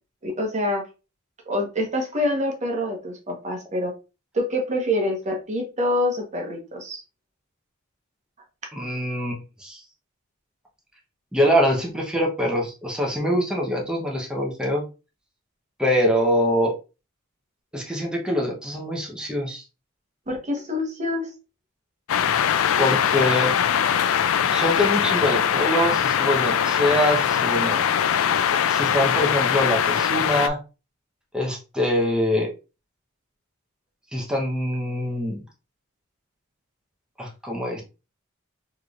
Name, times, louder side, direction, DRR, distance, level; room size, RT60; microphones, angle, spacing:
voice 1, 0.2-0.8 1.5-3.9 4.3-7.0 20.3-21.3, left 1 dB, 35° right, 2 dB, 1.1 m, -26 dB
voice 2, 8.7-9.8 11.3-14.8 15.8-16.7 17.7-19.6 22.8-23.5 24.4-27.8 28.7-30.6 31.3-32.5 34.1-35.4 37.2-37.8, equal, 5° right, -1 dB, 0.8 m, -24 dB
sound 1, 22.1-30.5, left 8 dB, 70° left, 0.4 m, -22 dB
4.5 x 3.2 x 2.4 m, 0.30 s
head